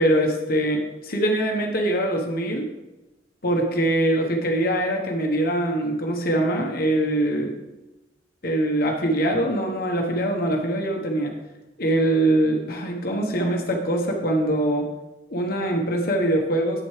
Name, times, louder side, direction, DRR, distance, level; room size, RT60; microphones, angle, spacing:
voice 1, 0.0-2.6 3.4-7.5 8.4-11.3 11.8-14.9 15.3-16.8, right 1 dB, 55° left, 1 dB, 1.2 m, -23 dB
8.8 x 7.7 x 3.3 m, 1.0 s
head